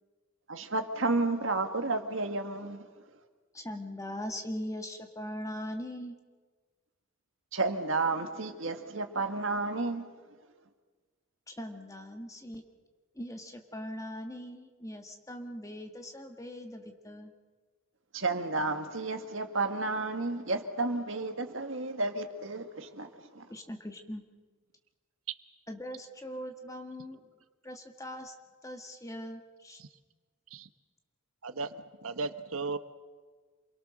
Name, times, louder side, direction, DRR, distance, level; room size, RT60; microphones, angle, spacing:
voice 1, 0.5-2.9 7.5-10.1 18.1-23.5, right 3 dB, 60° right, 1.8 m, -32 dB
voice 2, 3.5-6.1 11.5-12.6 13.1-17.3 23.5-24.2 25.7-27.2 27.6-28.3 28.6-29.8, equal, 15° left, 1.7 m, -41 dB
voice 3, 31.4-32.8, right 3 dB, 80° right, 1.1 m, -36 dB
28.0 x 22.5 x 6.5 m
head